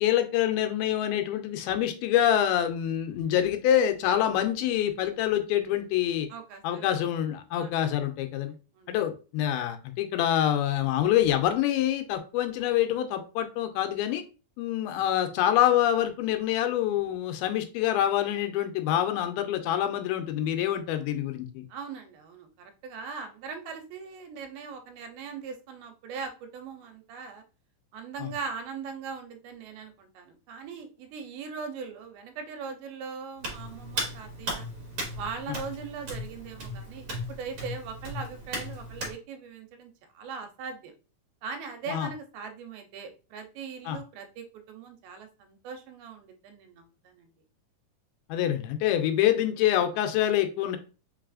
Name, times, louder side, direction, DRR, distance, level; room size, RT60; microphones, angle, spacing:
voice 1, 0.0-6.3 6.6-8.5 8.9-14.2 14.6-21.7 28.2-28.3 35.5-35.6 41.9-42.1 43.9-44.0 48.3-50.8, left 11 dB, 85° left, 7 dB, 2.5 m, -26 dB
voice 2, 6.3-7.0 7.6-7.8 8.4-8.5 8.7-8.9 21.7-27.4 27.9-34.7 35.1-40.9 41.4-47.4, right 5 dB, 85° right, 6 dB, 2.6 m, -40 dB
Hands, 33.4-39.1, equal, 60° right, 1.5 m, -36 dB
5.4 x 3.3 x 2.4 m, 0.34 s
omnidirectional pair, 4.3 m